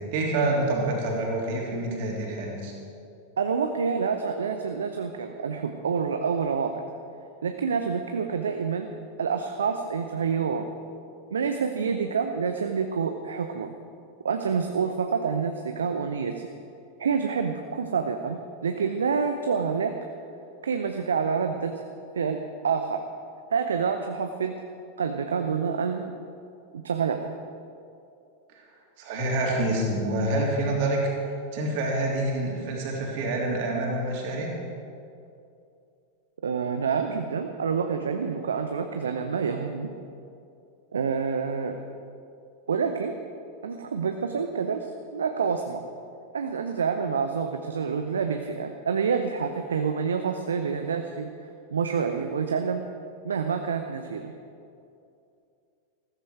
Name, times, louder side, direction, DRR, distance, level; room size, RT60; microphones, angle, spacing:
voice 1, 0.0-2.7 28.5-28.6 29.0-31.0 31.5-34.5, right 2 dB, 50° right, -1 dB, 3.1 m, -27 dB
voice 2, 3.4-6.8 7.4-10.7 11.3-13.7 14.2-16.5 17.0-20.0 20.6-21.8 22.2-23.0 23.5-24.6 25.0-26.1 26.7-27.3 36.4-39.9 40.9-41.8 42.7-43.2 43.6-45.8 46.3-52.8 53.2-54.3, right 6 dB, 70° right, 6 dB, 0.7 m, -28 dB
14.5 x 14.0 x 4.7 m, 2.5 s
figure-of-eight pair, 90°, 0 cm